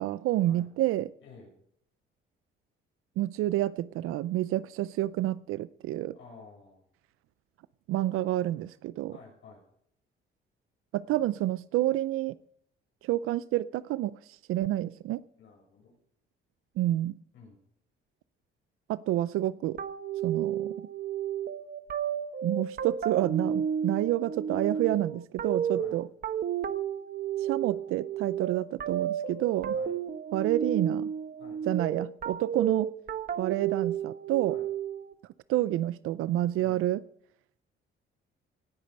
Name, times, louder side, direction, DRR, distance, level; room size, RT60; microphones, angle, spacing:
voice 1, 0.0-1.1 3.2-6.1 7.9-9.1 10.9-12.3 13.0-14.1 14.5-15.2 16.8-17.1 18.9-19.8 20.2-20.8 22.4-26.1 27.4-29.7 30.3-31.1 31.7-32.9 33.4-34.6 35.5-37.0, right 14 dB, 85° right, 17 dB, 0.4 m, -29 dB
voice 2, 1.2-1.6 6.1-6.8 9.1-9.6 15.4-16.0 17.3-17.6 25.7-26.0 29.7-30.0 31.4-31.6 34.5-34.7 36.5-36.8, left 4 dB, 65° left, -1 dB, 7.3 m, -52 dB
sound 1, 19.8-35.1, right 8 dB, 45° right, 0.9 m, -32 dB
18.5 x 8.5 x 5.3 m, 0.70 s
cardioid pair, 110°, 21 cm